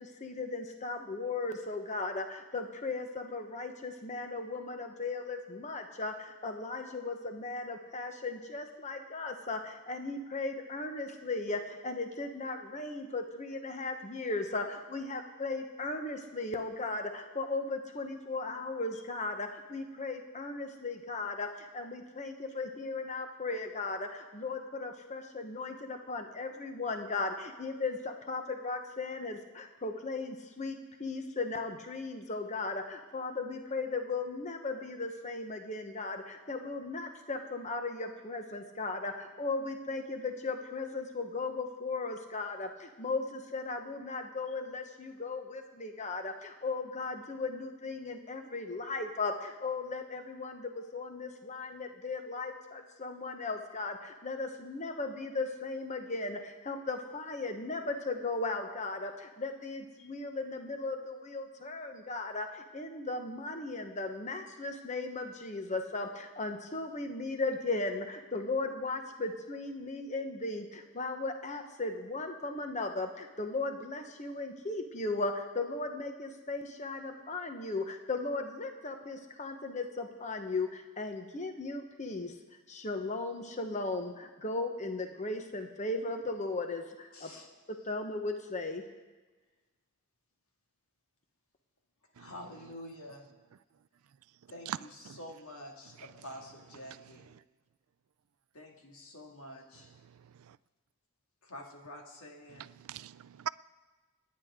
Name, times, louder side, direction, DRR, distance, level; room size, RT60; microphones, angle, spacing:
voice 1, 0.0-82.3 82.7-87.3 87.7-88.8, left 3 dB, 30° left, 1.0 m, -37 dB
voice 2, 87.1-87.5 92.2-93.3 94.5-97.3 98.5-100.0 101.4-102.7, left 1 dB, 70° left, 2.2 m, -48 dB
voice 3, 102.6-103.5, right 9 dB, 70° right, 0.4 m, -40 dB
29.0 x 9.7 x 3.7 m
head